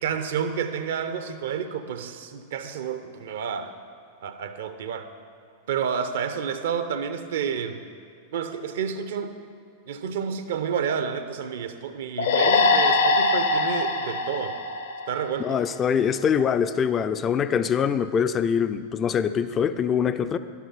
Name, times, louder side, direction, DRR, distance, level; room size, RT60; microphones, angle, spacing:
voice 1, 0.0-3.7 4.2-5.1 5.7-7.8 8.3-9.3 9.9-14.6 15.1-15.5, right 7 dB, 60° right, 9 dB, 0.7 m, -30 dB
sound 1, 12.2-15.6, left 3 dB, 65° left, 0.8 m, -22 dB
voice 2, 15.4-20.4, left 7 dB, 25° left, 12 dB, 0.4 m, -24 dB
11.5 x 8.3 x 5.7 m, 2.4 s
figure-of-eight pair, 90°, 0 cm